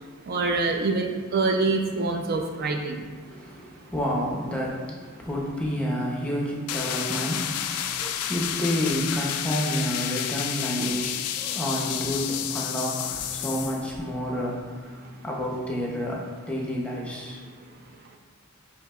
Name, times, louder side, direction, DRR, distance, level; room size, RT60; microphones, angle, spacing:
voice 1, 0.3-3.0 10.8-10.9, right 3 dB, 45° right, 3 dB, 0.4 m, -25 dB
voice 2, 3.2-17.6, equal, 5° left, -3 dB, 0.6 m, -30 dB
sound 1, 6.7-13.9, left 10 dB, 85° left, 0.3 m, -30 dB
7.7 x 2.9 x 2.3 m, 1.5 s
head